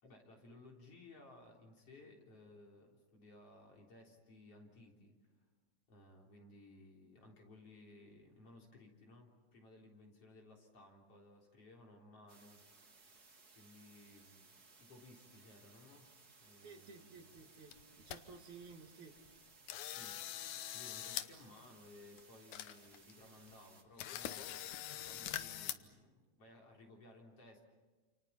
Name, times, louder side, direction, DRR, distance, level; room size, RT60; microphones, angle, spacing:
voice 1, 0.0-5.5 5.9-12.6 13.5-14.5 14.8-16.1 16.4-17.4 19.9-24.7 25.1-27.6, left 2 dB, 55° left, 0 dB, 4.7 m, -59 dB
sound 1, 12.3-23.8, right 4 dB, 35° right, 2.7 m, -63 dB
voice 2, 16.6-19.1, right 5 dB, 75° right, 3 dB, 3.6 m, -55 dB
sound 2, 17.4-17.5 17.7-18.2 18.6-18.7 19.2-19.4 19.7-21.3 21.6-21.7 22.2-22.3 22.5-23.1 23.5-23.6 24.0-25.7, left 12 dB, 85° left, 2.4 m, -43 dB
29.0 x 28.5 x 5.8 m, 1.3 s
omnidirectional pair, 3.4 m